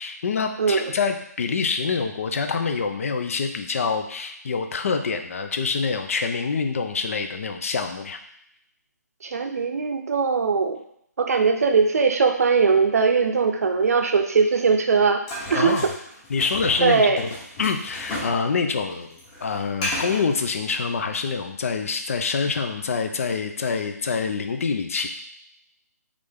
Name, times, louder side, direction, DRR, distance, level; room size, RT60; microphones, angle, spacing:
voice 1, 0.0-8.2 15.5-15.9 16.3-17.3 17.6-25.1, left 5 dB, 50° left, 6 dB, 0.5 m, -26 dB
voice 2, 0.6-0.9 9.2-10.8 11.2-15.2 15.5-15.8 16.8-17.2, right 5 dB, 60° right, 5 dB, 0.6 m, -20 dB
sound 1, 15.3-18.4 18.7-20.3, left 1 dB, 20° left, 1.1 m, -33 dB
3.7 x 3.2 x 3.4 m, 0.71 s
hypercardioid pair, 160°, 9 cm